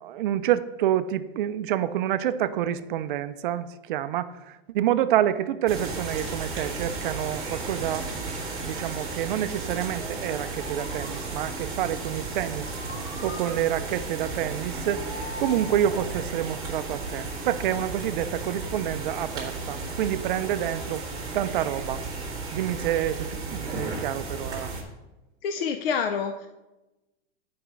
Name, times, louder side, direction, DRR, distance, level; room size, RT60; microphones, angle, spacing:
voice 1, 0.0-4.3 4.7-8.1 8.6-12.7 13.2-15.0 15.4-21.0 21.3-22.1 22.5-24.7, right 11 dB, 55° right, 12 dB, 0.5 m, -28 dB
sound 1, 5.7-24.8, right 3 dB, 15° right, 1.8 m, -34 dB
sound 2, 8.9-9.0 9.7-11.7 12.6-14.1 14.9-16.3 17.2-17.5, left 2 dB, 85° left, 2.2 m, -44 dB
voice 2, 25.4-26.5, left 6 dB, 70° left, 7 dB, 0.6 m, -27 dB
9.6 x 5.1 x 4.6 m, 1.0 s
supercardioid pair, 170°, 31 cm